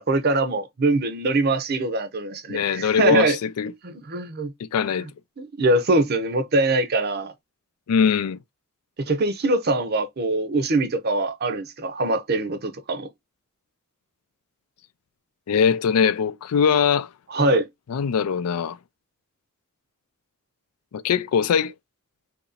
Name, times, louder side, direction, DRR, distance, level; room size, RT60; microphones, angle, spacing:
voice 1, 0.0-3.4 3.8-4.5 5.0-5.1 5.4-7.3 9.0-13.1 17.3-17.7, right 2 dB, 45° right, 0.6 m, -23 dB
voice 2, 2.5-3.7 4.6-5.1 7.9-8.4 15.5-17.1 17.9-18.8 20.9-21.7, left 7 dB, 80° left, 0.4 m, -21 dB
2.9 x 2.6 x 3.8 m
head